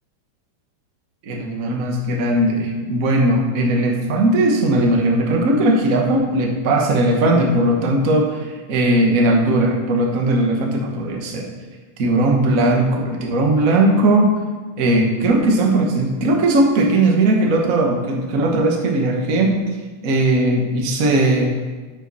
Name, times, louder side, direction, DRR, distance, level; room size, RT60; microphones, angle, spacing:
voice 1, 1.3-8.4 8.7-11.5 12.0-14.3 14.8-19.6 20.0-21.5, right 1 dB, 40° right, 1 dB, 1.2 m, -18 dB
9.6 x 6.7 x 6.2 m, 1.3 s
omnidirectional pair, 3.3 m